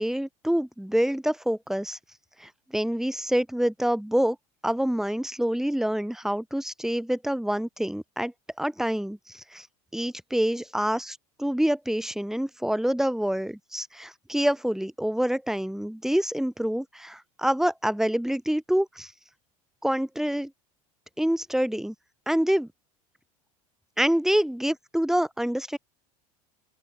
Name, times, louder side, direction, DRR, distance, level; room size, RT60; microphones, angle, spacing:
voice 1, 0.0-2.0 2.4-4.4 4.6-8.3 8.6-9.7 9.9-19.1 19.8-20.5 21.2-21.9 22.3-22.7 24.0-25.8, equal, ahead, 5.0 m, -26 dB
open air
hypercardioid pair, 80°, 19 cm